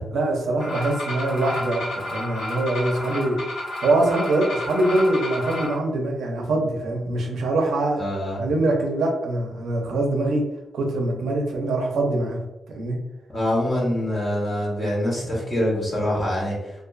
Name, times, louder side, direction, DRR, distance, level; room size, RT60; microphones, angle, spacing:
voice 1, 0.1-3.4 3.8-8.0 8.4-10.5 10.7-12.4 12.8-13.0, right 2 dB, 85° right, 1 dB, 0.5 m, -23 dB
sound 1, 0.6-5.7, left 1 dB, 75° left, 1.0 m, -31 dB
voice 2, 8.0-8.4 13.3-16.6, left 1 dB, 30° left, -5 dB, 1.0 m, -24 dB
2.4 x 2.3 x 2.3 m, 0.96 s
cardioid pair, 115°, 0 cm